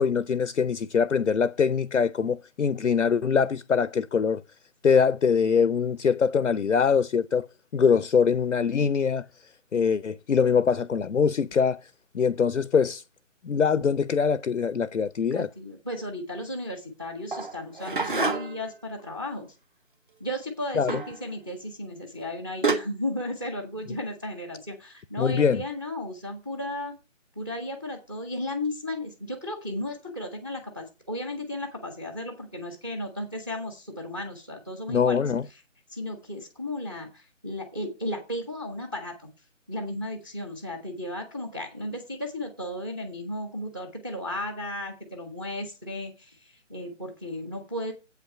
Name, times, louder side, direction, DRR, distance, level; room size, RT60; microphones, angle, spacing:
voice 1, 0.0-4.4 4.8-7.5 7.7-9.2 9.7-11.9 12.1-13.0 13.4-15.5 20.8-21.0 25.2-25.6 34.9-35.4, left 6 dB, 75° left, 0.6 m, -23 dB
voice 2, 15.2-19.5 20.2-26.9 27.4-35.2 35.9-39.3 39.7-47.9, left 1 dB, 20° right, 0.8 m, -34 dB
sound 1, 17.3-18.7 20.9-21.2 22.2-22.3 22.6-22.7, right 3 dB, 40° right, 1.3 m, -27 dB
8.0 x 5.9 x 5.5 m
figure-of-eight pair, 160°, 38 cm